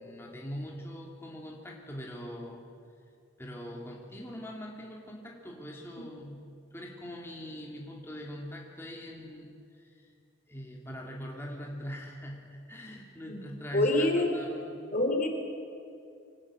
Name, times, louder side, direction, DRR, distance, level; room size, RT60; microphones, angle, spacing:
voice 1, 0.0-2.7 3.4-10.1 10.5-14.8, equal, 10° left, -2 dB, 2.7 m, -42 dB
voice 2, 13.7-14.3 14.9-15.3, left 1 dB, 45° left, 4 dB, 3.0 m, -25 dB
24.5 x 18.5 x 8.8 m, 2.4 s
head